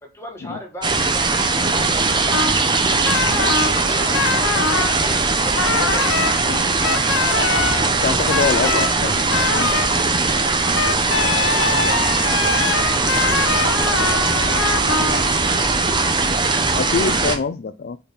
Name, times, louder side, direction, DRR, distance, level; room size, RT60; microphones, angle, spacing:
voice 1, 0.0-2.9 3.9-6.2 7.0-8.8 10.2-10.4 10.9-14.9, left 1 dB, 15° left, 1.7 m, -38 dB
sound 1, 0.8-17.4, right 3 dB, 25° right, 0.7 m, -20 dB
sound 2, 2.3-2.6 3.1-3.8 4.1-5.0 5.6-6.3 6.8-7.9 8.3-8.9 9.3-10.0 10.8-15.5, left 5 dB, 80° left, 0.7 m, -23 dB
voice 2, 7.7-9.2 9.5-9.8 16.7-18.0, left 5 dB, 50° left, 0.3 m, -25 dB
5.4 x 4.3 x 5.1 m
head